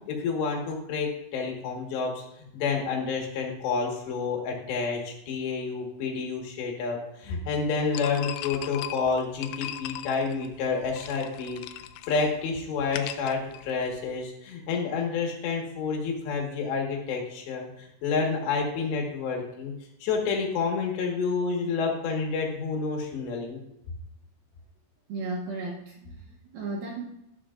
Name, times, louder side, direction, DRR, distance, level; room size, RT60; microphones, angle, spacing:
voice 1, 0.1-2.2 2.5-11.6 12.1-19.7 20.0-23.6, left 5 dB, 70° left, 0 dB, 3.7 m, -29 dB
sound 1, 7.9-14.2, left 13 dB, 85° left, 2.9 m, -39 dB
voice 2, 25.1-27.0, right 2 dB, 70° right, -1 dB, 2.3 m, -35 dB
12.0 x 12.0 x 2.5 m, 0.83 s
omnidirectional pair, 5.5 m